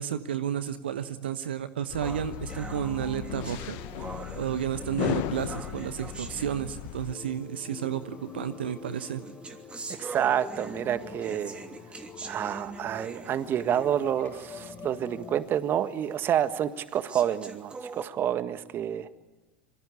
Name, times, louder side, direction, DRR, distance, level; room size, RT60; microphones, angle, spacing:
voice 1, 0.0-3.8 4.4-9.2, right 9 dB, 75° right, 12 dB, 1.1 m, -32 dB
sound 1, 1.9-7.1, left 17 dB, 55° left, 1.1 m, -36 dB
sound 2, 2.0-7.2 8.0-8.1 8.9-14.2 14.6-14.7 15.2-15.3 16.0-16.1 16.9-18.0, right 3 dB, 20° right, 3.0 m, -43 dB
sound 3, 7.1-15.5, left 6 dB, 30° left, 3.8 m, -46 dB
voice 2, 10.0-11.6 12.2-19.1, right 10 dB, 40° right, 11 dB, 1.7 m, -28 dB
26.0 x 24.0 x 8.5 m, 1.2 s
figure-of-eight pair, 80°, 6 cm